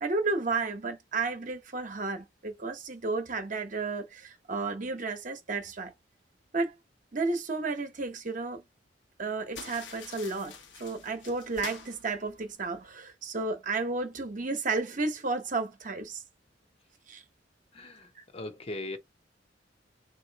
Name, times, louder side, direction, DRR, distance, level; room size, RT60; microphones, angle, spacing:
voice 1, 0.0-5.9 6.5-6.7 7.1-8.6 9.2-16.2 17.1-17.2 18.1-18.2, right 3 dB, 45° right, 1.0 m, -32 dB
sound 1, 9.5-12.9, left 5 dB, 80° left, 0.9 m, -46 dB
voice 2, 17.7-19.0, left 2 dB, 35° left, 0.8 m, -39 dB
3.7 x 2.6 x 4.0 m
head